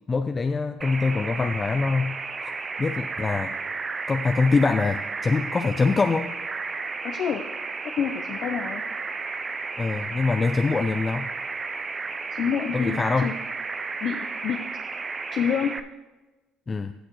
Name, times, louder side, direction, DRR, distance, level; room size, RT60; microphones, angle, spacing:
voice 1, 0.1-3.6 4.1-6.3 9.8-11.3 12.7-13.3 16.7-16.9, left 4 dB, 25° left, 7 dB, 0.5 m, -24 dB
sound 1, 0.8-15.8, right 4 dB, 30° right, 0.6 m, -33 dB
voice 2, 7.0-7.5 7.8-8.8 12.3-13.3 14.0-14.6 15.3-15.8, left 7 dB, 60° left, 5 dB, 0.7 m, -28 dB
16.0 x 6.5 x 3.1 m, 1.1 s
supercardioid pair, 85°, 0 cm